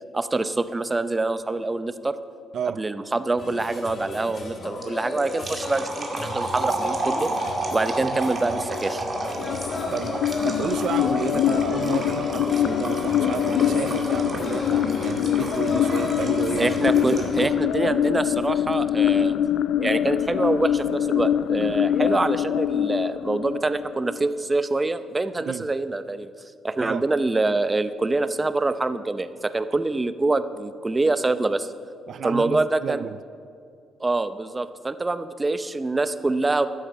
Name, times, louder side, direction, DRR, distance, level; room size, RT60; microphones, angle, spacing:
voice 1, 0.1-2.2 2.8-7.3 7.7-9.0 16.6-19.3 19.8-26.3 26.6-31.7 32.2-33.0 34.0-36.7, right 2 dB, 20° right, 0.6 m, -25 dB
voice 2, 2.5-2.9 8.0-8.2 9.9-17.5 25.4-25.6 26.8-27.0 32.1-33.2, right 8 dB, 65° right, 0.4 m, -32 dB
sound 1, 3.4-17.4, left 2 dB, 45° left, 2.1 m, -33 dB
sound 2, 4.8-17.4, right 2 dB, 35° right, 2.4 m, -33 dB
sound 3, 9.4-24.3, left 10 dB, 75° left, 0.3 m, -24 dB
12.5 x 10.0 x 7.0 m
cardioid pair, 90°, 0 cm